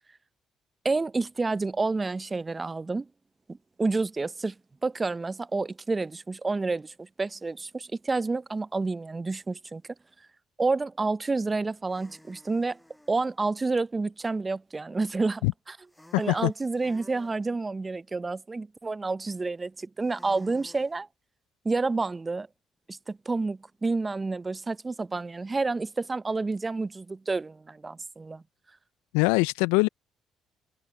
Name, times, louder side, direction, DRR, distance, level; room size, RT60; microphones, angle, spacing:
voice 1, 0.8-3.1 3.5-4.5 4.8-9.8 10.6-12.8 13.1-15.8 16.2-21.1 21.6-22.5 22.9-28.4, right 3 dB, 30° right, 0.7 m, -29 dB
sound 1, 11.8-13.3 15.9-17.4 20.0-20.9, left 1 dB, 5° left, 6.0 m, -53 dB
voice 2, 16.1-16.5 29.1-29.9, left 25 dB, 85° left, 0.4 m, -23 dB
hypercardioid pair, 50°, 0 cm